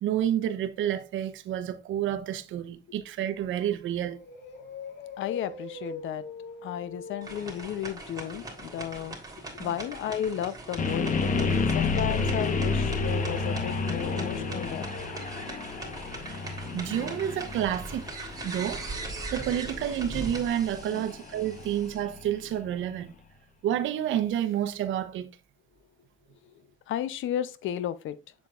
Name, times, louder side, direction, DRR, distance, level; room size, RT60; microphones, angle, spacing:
voice 1, 0.0-4.2 9.6-9.7 16.7-18.0 18.4-18.8 19.3-23.1 23.6-25.3, right 10 dB, 80° right, 0.9 m, -29 dB
sound 1, 3.6-3.7 4.1-10.0 12.1-20.1 20.4-20.5 20.8-20.9, left 4 dB, 60° left, 1.7 m, -46 dB
voice 2, 5.2-6.2 6.6-14.9 20.9-21.1 26.5-26.6 26.9-28.2, left 10 dB, 80° left, 0.7 m, -34 dB
sound 2, 7.2-22.0, right 2 dB, 20° right, 3.3 m, -41 dB
sound 3, 10.8-22.7, left 4 dB, 40° left, 1.1 m, -31 dB
7.5 x 7.3 x 2.5 m
cardioid pair, 90°, 20 cm